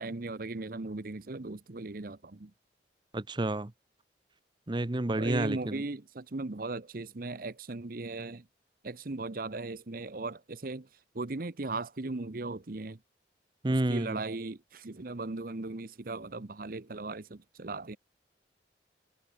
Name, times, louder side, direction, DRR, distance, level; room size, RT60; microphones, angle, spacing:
voice 1, 0.0-2.5 5.2-8.5 8.8-10.9 11.1-13.0 13.7-18.0, right 3 dB, 55° right, 0.9 m, -38 dB
voice 2, 3.1-3.7 4.7-5.8 13.6-14.2, right 1 dB, 25° right, 0.7 m, -29 dB
head